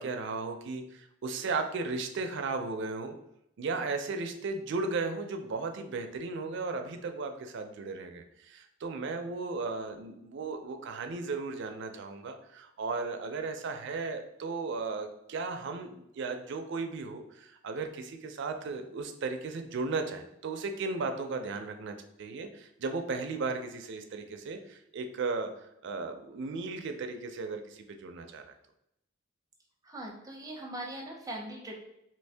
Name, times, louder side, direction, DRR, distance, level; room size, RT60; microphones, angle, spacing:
voice 1, 0.0-3.1 3.6-25.5 25.8-28.4, right 3 dB, 65° right, 6 dB, 0.4 m, -35 dB
voice 2, 29.8-31.8, right 1 dB, 20° right, 1 dB, 0.6 m, -40 dB
2.9 x 2.6 x 3.3 m, 0.79 s
head